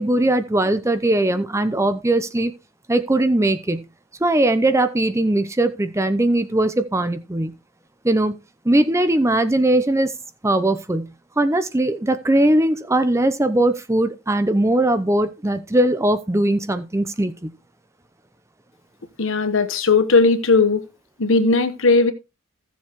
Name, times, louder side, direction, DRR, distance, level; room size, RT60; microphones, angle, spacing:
voice 1, 0.0-2.5 2.9-3.8 4.2-7.5 8.0-8.3 8.6-10.1 10.4-11.1 11.4-17.5, right 1 dB, 15° right, 0.6 m, -20 dB
voice 2, 19.2-20.8 21.2-22.1, left 3 dB, 60° left, 1.1 m, -17 dB
15.5 x 7.2 x 3.0 m
head